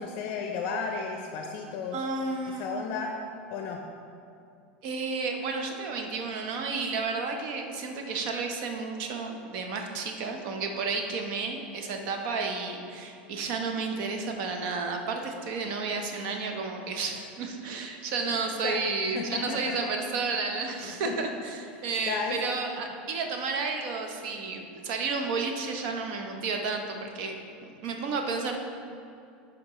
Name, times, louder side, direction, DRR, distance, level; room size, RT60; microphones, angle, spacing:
voice 1, 0.0-2.0 2.6-3.1 3.5-3.8 18.6-18.8 19.1-19.8 20.8-21.1 22.1-22.3, left 5 dB, 55° left, 2 dB, 0.5 m, -33 dB
voice 2, 1.9-2.6 4.8-27.3 27.6-28.6, right 4 dB, 60° right, 3 dB, 0.8 m, -32 dB
10.0 x 3.6 x 3.0 m, 2.5 s
supercardioid pair, 125°, 5 cm